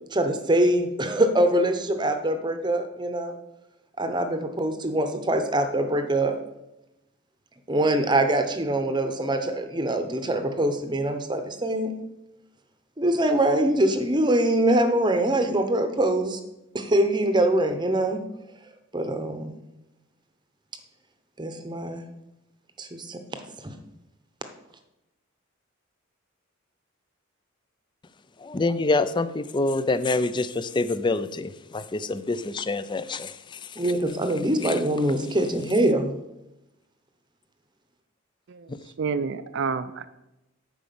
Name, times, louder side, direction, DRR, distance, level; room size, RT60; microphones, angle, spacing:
voice 1, 0.1-3.4 4.0-6.3 7.7-11.9 13.0-16.4 16.7-18.2 18.9-19.6 21.4-22.0 22.8-23.8 33.8-36.2, right 1 dB, 20° right, 0.8 m, -24 dB
voice 2, 28.4-33.8 34.6-34.8 38.7-38.8, left 3 dB, 20° left, 0.4 m, -26 dB
voice 3, 38.5-40.0, right 5 dB, 60° right, 0.5 m, -29 dB
9.1 x 4.9 x 6.9 m
head